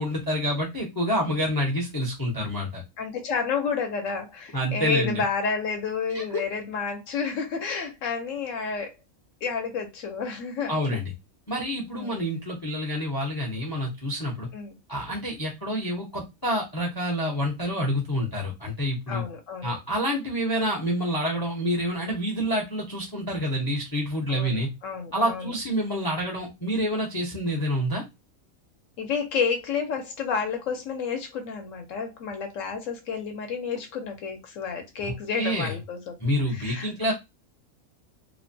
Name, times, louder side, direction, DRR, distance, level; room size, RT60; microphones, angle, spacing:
voice 1, 0.0-2.8 4.5-5.2 6.1-6.4 10.7-11.1 11.5-14.5 14.9-19.2 19.6-24.7 25.1-28.0 35.0-35.8 36.2-37.1, equal, 30° left, 0 dB, 0.4 m, -28 dB
voice 2, 3.0-8.9 9.4-10.8 11.9-12.2 14.5-14.8 19.1-19.8 24.3-25.5 29.0-36.1 36.5-37.1, left 5 dB, 70° left, 4 dB, 0.9 m, -30 dB
2.9 x 2.1 x 2.6 m, 0.22 s
omnidirectional pair, 1.5 m